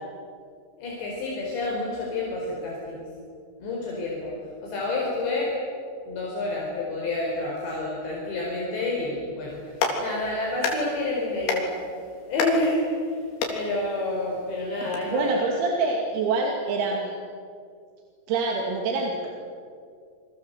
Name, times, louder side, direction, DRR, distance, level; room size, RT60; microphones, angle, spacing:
voice 1, 0.8-3.1 3.6-4.3 4.6-5.5 6.1-9.6 10.0-11.7 12.3-13.2 13.5-15.4, left 2 dB, 60° left, -3 dB, 6.6 m, -29 dB
Clapping, 9.5-15.0, left 4 dB, 85° left, 6.5 m, -32 dB
voice 2, 15.1-17.2 18.3-19.3, right 3 dB, 85° right, 1 dB, 5.2 m, -25 dB
28.0 x 25.0 x 8.1 m, 2.3 s
omnidirectional pair, 6.0 m